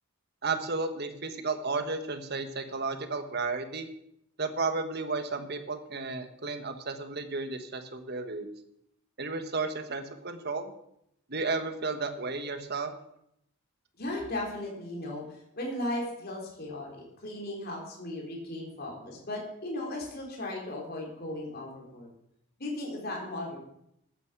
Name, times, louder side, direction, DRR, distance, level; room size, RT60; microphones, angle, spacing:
voice 1, 0.4-3.9 4.4-8.5 9.2-10.7 11.3-12.9, right 3 dB, 50° right, 8 dB, 1.3 m, -33 dB
voice 2, 14.0-22.1 22.6-23.6, left 1 dB, 45° left, -1 dB, 3.6 m, -36 dB
13.5 x 9.4 x 6.0 m, 0.76 s
head